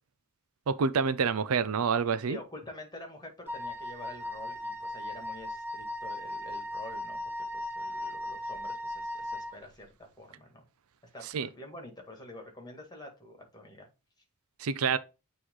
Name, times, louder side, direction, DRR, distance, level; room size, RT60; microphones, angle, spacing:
voice 1, 0.7-2.4 11.3-11.5 14.6-15.0, right 5 dB, 70° right, 0.5 m, -27 dB
voice 2, 2.2-10.6 11.1-13.9, left 1 dB, 20° left, 1.9 m, -47 dB
Wind instrument woodwind instrument, 3.5-9.6, left 1 dB, 10° right, 0.8 m, -37 dB
8.5 x 3.1 x 3.7 m
head